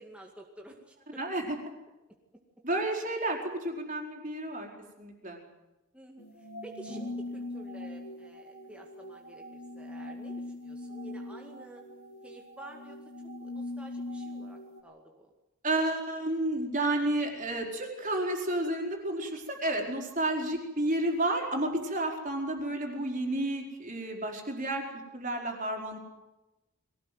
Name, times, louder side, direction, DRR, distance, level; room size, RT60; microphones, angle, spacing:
voice 1, 0.0-1.2 5.9-11.8 12.2-13.0 13.4-15.3, right 1 dB, 5° right, 0 dB, 2.1 m, -51 dB
voice 2, 1.2-1.6 2.6-4.7 5.0-5.4 15.6-24.8 25.1-26.0, right 1 dB, 35° right, 2 dB, 4.6 m, -31 dB
sound 1, 6.2-14.8, left 2 dB, 75° left, 5.6 m, -41 dB
22.5 x 18.0 x 9.5 m, 1.0 s
head